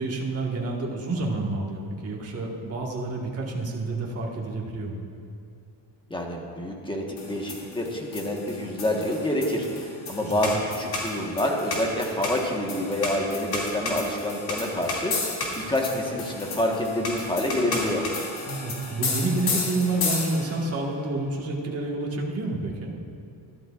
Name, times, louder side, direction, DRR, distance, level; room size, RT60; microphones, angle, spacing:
voice 1, 0.0-5.0 10.2-10.6 18.4-22.9, right 2 dB, 35° right, -2 dB, 1.6 m, -29 dB
voice 2, 6.1-18.0, left 1 dB, 10° left, 0 dB, 1.3 m, -27 dB
sound 1, 7.2-20.7, left 3 dB, 60° left, 2.5 m, -32 dB
13.5 x 12.0 x 2.5 m, 2.5 s
cardioid pair, 115°, 44 cm